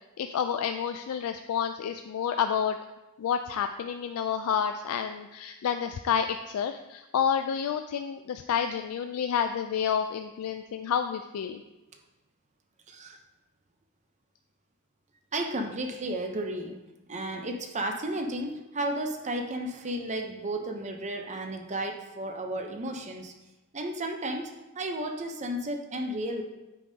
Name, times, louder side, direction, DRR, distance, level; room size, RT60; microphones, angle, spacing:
voice 1, 0.2-2.8 3.2-11.6, left 7 dB, 75° left, 7 dB, 0.3 m, -29 dB
voice 2, 12.9-13.2 15.3-16.8 17.1-23.4 23.7-26.4, right 1 dB, 35° right, 4 dB, 0.7 m, -33 dB
8.3 x 5.3 x 2.8 m, 1.0 s
head